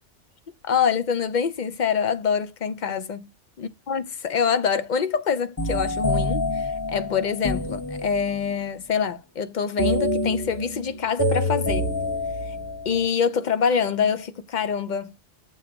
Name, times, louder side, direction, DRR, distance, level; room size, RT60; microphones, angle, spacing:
voice 1, 0.6-3.2 3.9-11.9 12.5-12.6 12.8-15.1, left 6 dB, 50° left, 0.7 m, -25 dB
sound 1, 5.6-8.6 9.8-13.1, left 1 dB, 15° left, 0.9 m, -26 dB
7.4 x 2.9 x 5.1 m
omnidirectional pair, 1.2 m